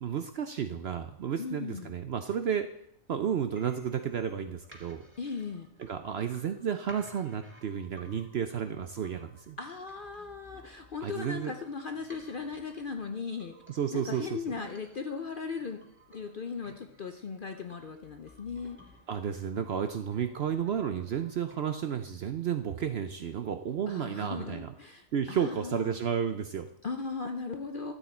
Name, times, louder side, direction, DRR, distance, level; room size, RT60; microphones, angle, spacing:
voice 1, 0.0-2.7 3.1-5.0 5.8-9.6 11.0-11.5 13.7-14.3 19.1-24.7 25.1-26.7, right 8 dB, 60° right, 8 dB, 0.7 m, -32 dB
voice 2, 1.4-1.9 5.2-5.7 9.6-13.6 13.9-15.8 16.1-18.8 23.9-26.0 26.8-27.9, left 5 dB, 50° left, 6 dB, 0.6 m, -38 dB
sound 1, 3.5-21.5, equal, 10° right, 1.7 m, -57 dB
13.0 x 8.2 x 4.4 m, 0.70 s
omnidirectional pair, 1.6 m